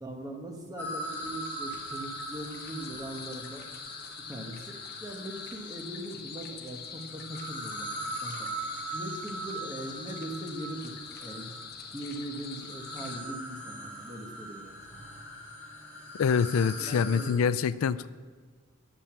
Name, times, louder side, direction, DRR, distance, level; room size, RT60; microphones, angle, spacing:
voice 1, 0.0-3.6 4.3-4.7 5.0-7.9 8.2-8.5 8.9-11.5 11.9-15.0 16.9-17.8, right 1 dB, 20° right, 2 dB, 1.3 m, -40 dB
sound 1, 0.8-6.0 6.8-17.3, right 1 dB, 10° left, 2.8 m, -41 dB
sound 2, 1.0-13.2, left 6 dB, 50° left, 1.2 m, -44 dB
voice 2, 16.2-18.1, left 6 dB, 85° left, 16 dB, 0.4 m, -25 dB
10.5 x 6.9 x 7.3 m, 1.5 s
head